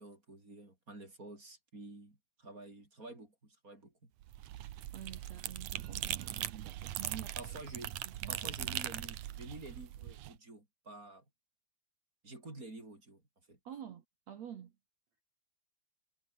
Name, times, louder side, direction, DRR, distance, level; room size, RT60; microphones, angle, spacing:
voice 1, 0.0-4.1 7.4-11.2 12.2-13.2 13.5-13.6, right 2 dB, 20° right, 5.5 m, -50 dB
sound 1, 4.2-10.3, right 13 dB, 70° right, 1.9 m, -40 dB
voice 2, 4.9-7.3 8.0-8.8 13.6-14.7, right 9 dB, 55° right, 2.3 m, -49 dB
omnidirectional pair, 4.7 m